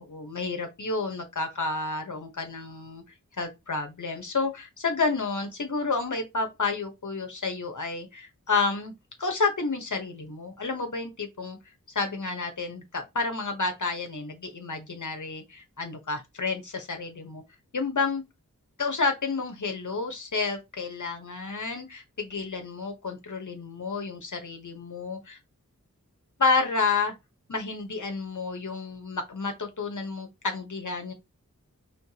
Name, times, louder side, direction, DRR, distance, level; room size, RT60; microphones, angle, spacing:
voice 1, 0.0-3.0 3.4-8.9 9.2-11.6 11.9-17.4 17.7-18.2 18.8-25.4 26.4-27.1 27.5-31.1, left 4 dB, 60° left, 1.0 m, -30 dB
4.4 x 3.6 x 2.8 m
wide cardioid pair, 40°, 34 cm